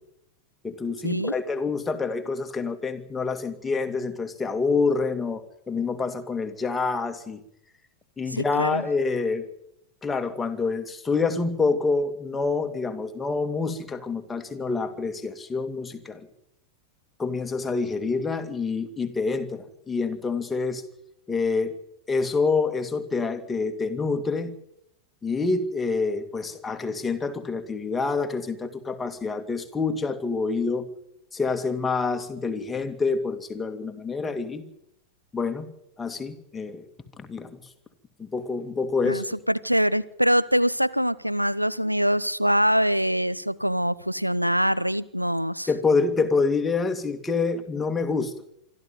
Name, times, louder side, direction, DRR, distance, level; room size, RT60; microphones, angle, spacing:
voice 1, 0.6-7.4 8.2-9.4 10.0-16.2 17.2-20.8 21.3-21.7 22.1-24.5 25.2-30.9 31.3-34.6 35.3-35.7 36.0-36.8 37.2-37.6 38.2-39.2 45.7-48.3, left 4 dB, 15° left, 6 dB, 2.5 m, -27 dB
voice 2, 8.3-8.8 39.0-45.7, equal, 90° right, 17 dB, 0.7 m, -24 dB
26.0 x 12.5 x 9.0 m, 0.77 s
figure-of-eight pair, 90°, 0 cm